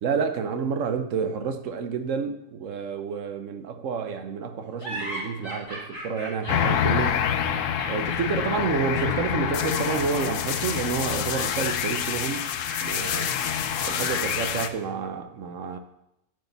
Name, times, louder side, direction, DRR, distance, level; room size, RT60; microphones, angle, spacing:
voice 1, 0.0-7.2 7.8-12.5 12.8-13.3 13.8-15.8, right 6 dB, 80° right, 1.2 m, -29 dB
sound 1, 4.8-14.6, right 1 dB, 20° left, 2.5 m, -39 dB
sound 2, 6.5-14.7, left 8 dB, 90° left, 1.0 m, -27 dB
11.0 x 8.1 x 4.0 m
omnidirectional pair, 1.3 m